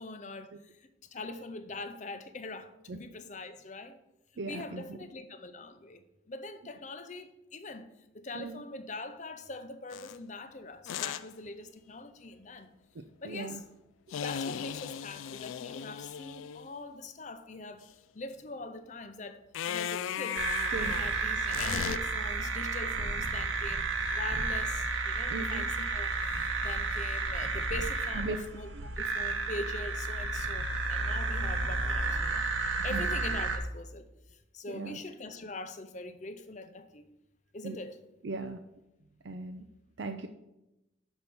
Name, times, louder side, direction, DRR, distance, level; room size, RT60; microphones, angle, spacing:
voice 1, 0.0-4.0 4.5-7.9 8.1-12.7 13.2-13.6 14.2-17.9 18.1-19.4 19.7-20.4 20.7-32.4 32.8-37.1 37.5-38.0, left 2 dB, 40° left, 0.6 m, -43 dB
voice 2, 4.4-4.8 8.3-8.6 12.9-13.6 20.7-21.0 25.3-25.7 28.1-28.4 32.9-33.1 34.7-35.0 37.6-37.8 38.2-38.6 39.2-39.7 40.0-40.3, right 3 dB, 65° right, 0.5 m, -38 dB
sound 1, 9.9-10.2 10.9-11.3 14.1-16.7 19.5-22.0, left 8 dB, 90° left, 0.3 m, -37 dB
sound 2, 20.4-33.6, right 3 dB, 90° right, 1.1 m, -32 dB
6.0 x 5.4 x 6.8 m
head